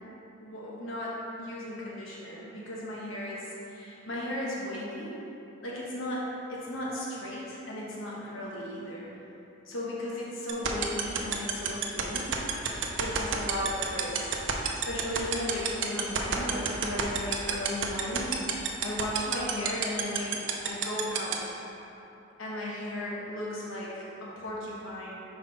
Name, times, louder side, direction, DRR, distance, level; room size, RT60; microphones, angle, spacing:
voice 1, 0.4-5.1 5.6-9.0 9.7-12.3 13.0-14.3 14.8-18.4 18.8-21.5 22.4-25.1, left 1 dB, 85° left, -5 dB, 1.1 m, -35 dB
sound 1, 10.5-21.3, right 9 dB, 65° right, 0.6 m, -27 dB
5.7 x 5.0 x 4.0 m, 3.0 s
head